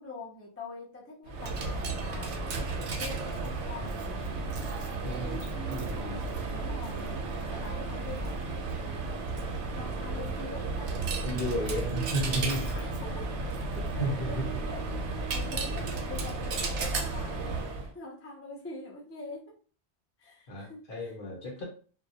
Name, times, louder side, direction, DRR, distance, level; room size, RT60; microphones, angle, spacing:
voice 1, 0.0-2.6 3.0-4.4 6.5-9.3 9.7-11.0 12.6-13.4 13.9-19.6 20.2-21.2, left 3 dB, 20° left, -3 dB, 0.3 m, -45 dB
Coin (dropping), 1.3-17.9, right 3 dB, 90° right, 0.9 m, -33 dB
voice 2, 5.0-6.3 11.2-12.7 13.7-14.5 20.5-21.6, equal, 55° left, -1 dB, 0.9 m, -34 dB
2.3 x 2.0 x 2.7 m, 0.39 s
omnidirectional pair, 1.1 m